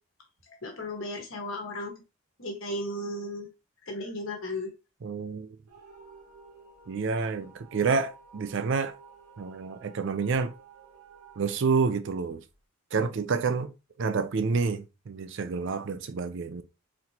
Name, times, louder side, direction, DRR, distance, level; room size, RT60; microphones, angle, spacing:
voice 1, 0.5-1.9 2.4-3.5 3.8-4.7, left 1 dB, 60° left, 1.3 m, -35 dB
voice 2, 5.0-5.5 6.9-8.9 9.4-10.5 11.4-12.4 12.9-13.7 14.0-16.6, right 5 dB, 55° right, 0.4 m, -28 dB
sound 1, 5.7-12.6, right 4 dB, 80° right, 0.9 m, -53 dB
4.1 x 2.9 x 2.8 m
head